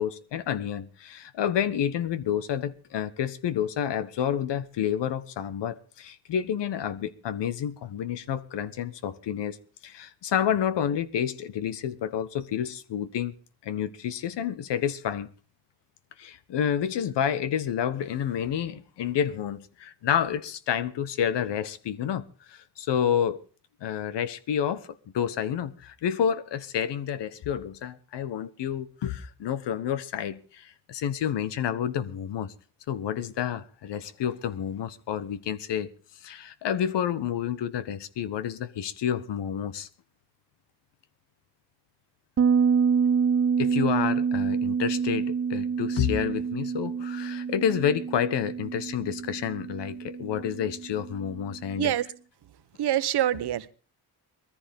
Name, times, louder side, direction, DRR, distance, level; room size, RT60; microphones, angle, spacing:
voice 1, 0.0-9.6 9.8-13.3 13.6-15.3 16.2-22.2 22.5-23.4 23.8-32.5 32.9-35.9 36.2-39.9 43.6-51.9, left 9 dB, 85° left, 1.3 m, -29 dB
Bass guitar, 42.4-51.7, right 6 dB, 35° right, 0.8 m, -27 dB
voice 2, 52.8-53.7, right 12 dB, 70° right, 1.1 m, -25 dB
21.0 x 14.5 x 3.6 m
cardioid pair, 90°, 41 cm